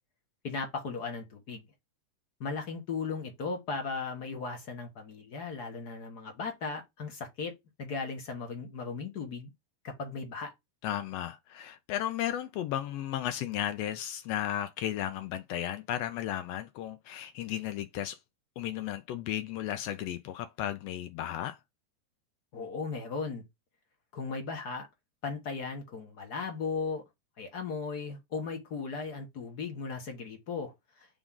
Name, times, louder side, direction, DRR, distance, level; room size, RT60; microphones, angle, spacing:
voice 1, 0.4-1.6 2.4-7.5 7.8-9.5 9.8-10.5 22.5-23.4 24.1-24.9 25.2-27.0 27.4-31.1, left 4 dB, 50° left, 1.3 m, -37 dB
voice 2, 10.8-18.2 18.6-21.6, left 11 dB, 80° left, 1.5 m, -34 dB
7.1 x 3.7 x 3.6 m
omnidirectional pair, 3.3 m